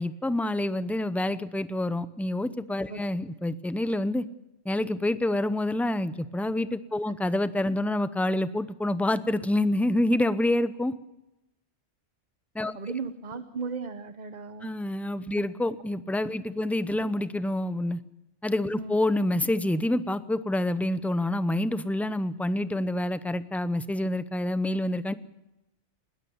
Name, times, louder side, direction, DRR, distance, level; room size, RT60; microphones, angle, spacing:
voice 1, 0.0-4.2 4.6-10.9 12.5-12.8 14.6-18.0 18.4-25.1, left 1 dB, ahead, 14 dB, 0.5 m, -27 dB
voice 2, 12.7-14.7 18.8-19.0, right 5 dB, 40° right, 10 dB, 1.0 m, -36 dB
20.5 x 18.5 x 7.1 m, 0.93 s
omnidirectional pair, 1.2 m